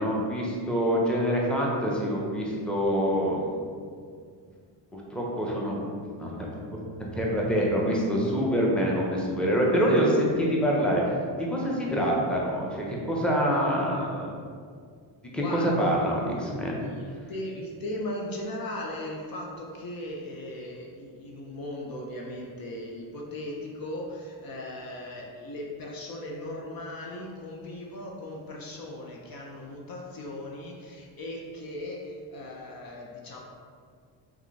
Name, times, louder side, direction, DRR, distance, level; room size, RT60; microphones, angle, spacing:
voice 1, 0.0-3.7 4.9-5.9 6.2-6.8 7.1-11.0 11.4-14.3 15.3-16.8, equal, ahead, -3 dB, 0.9 m, -26 dB
voice 2, 15.4-16.0 16.7-33.4, left 1 dB, 50° left, -1 dB, 0.7 m, -38 dB
3.6 x 3.6 x 3.2 m, 2.1 s
supercardioid pair, 80°, 46 cm